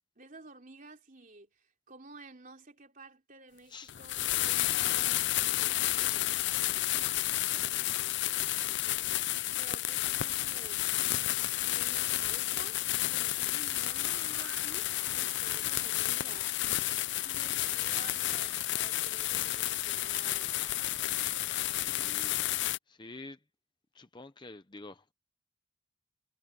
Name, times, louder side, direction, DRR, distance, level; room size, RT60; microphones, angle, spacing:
voice 1, 0.2-10.8 11.6-16.6 16.9-20.6, right 3 dB, 40° right, 3.5 m, -53 dB
sound 1, 3.9-22.8, left 15 dB, 50° left, 0.4 m, -31 dB
sound 2, 13.7-22.7, right 6 dB, 70° right, 3.2 m, -52 dB
voice 2, 21.6-22.4 22.9-23.4 23.9-25.1, left 2 dB, 20° left, 0.7 m, -48 dB
head